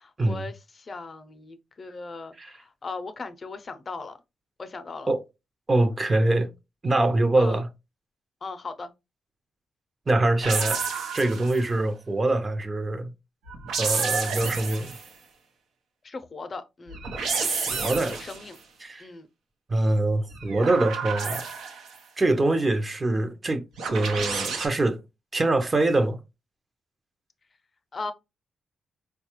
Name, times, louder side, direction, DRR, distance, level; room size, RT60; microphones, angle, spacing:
voice 1, 0.0-4.2 4.6-5.1 7.4-7.6 8.4-8.9 16.0-17.0 18.1-18.6 19.0-19.3 27.9-28.1, left 3 dB, 45° left, 0.5 m, -38 dB
voice 2, 5.7-6.5 6.8-7.7 10.1-10.8 11.1-13.1 13.8-14.9 17.7-18.2 18.8-19.1 19.7-21.4 22.2-25.0 25.3-26.2, right 2 dB, 35° right, 0.7 m, -24 dB
sound 1, 10.4-11.7 13.5-15.1 16.9-18.5 20.3-22.0 23.8-24.7, right 5 dB, 90° right, 0.7 m, -30 dB
4.2 x 2.3 x 2.9 m
cardioid pair, 70°, 0 cm